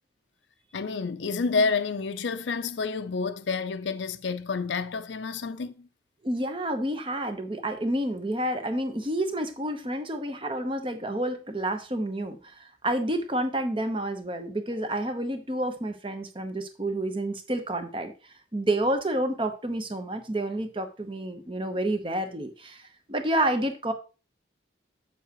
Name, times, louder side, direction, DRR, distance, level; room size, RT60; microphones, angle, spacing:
voice 1, 0.7-5.9, left 4 dB, 75° left, 0.5 m, -29 dB
voice 2, 6.2-18.1 18.5-22.8 23.1-23.9, right 1 dB, 25° right, 1.0 m, -29 dB
8.1 x 7.3 x 3.0 m
head